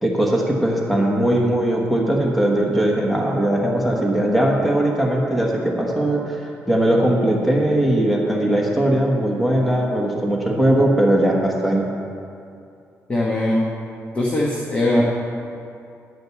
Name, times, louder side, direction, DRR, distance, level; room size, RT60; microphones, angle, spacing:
voice 1, 0.0-11.8, right 1 dB, ahead, -2 dB, 1.3 m, -19 dB
voice 2, 13.1-13.6 14.1-15.0, left 1 dB, 25° left, -3 dB, 1.2 m, -20 dB
11.0 x 5.2 x 8.2 m, 2.5 s
cardioid pair, 125°, 5 cm